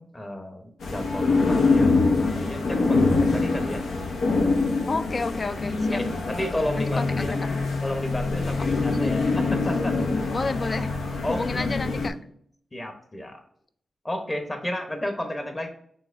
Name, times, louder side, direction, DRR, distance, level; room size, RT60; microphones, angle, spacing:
voice 1, 0.0-3.8 6.2-7.4 7.8-10.0 11.2-11.7 12.7-13.4 14.0-15.7, left 1 dB, 20° left, 4 dB, 1.0 m, -32 dB
sound 1, 0.8-12.1, left 3 dB, 85° left, 0.8 m, -24 dB
voice 2, 4.9-6.0 6.8-7.4 10.3-10.9 11.3-12.1, left 3 dB, 40° left, 12 dB, 0.3 m, -30 dB
5.5 x 3.2 x 2.6 m, 0.63 s
cardioid pair, 90°, 0 cm